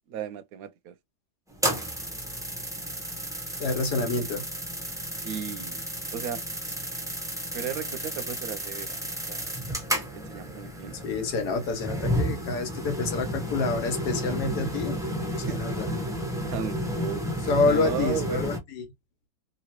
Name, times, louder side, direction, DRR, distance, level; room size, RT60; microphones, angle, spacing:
voice 1, 0.1-0.9 5.2-5.8 6.1-6.4 7.5-9.0 9.3-9.6 9.9-11.0 15.5-15.7 16.5-18.5, right 8 dB, 70° right, 1.0 m, -35 dB
sound 1, 1.5-18.6, equal, 5° right, 0.3 m, -32 dB
voice 2, 3.6-4.4 11.0-15.9 17.5-18.8, left 4 dB, 80° left, 1.5 m, -28 dB
3.0 x 2.9 x 2.8 m
omnidirectional pair, 1.7 m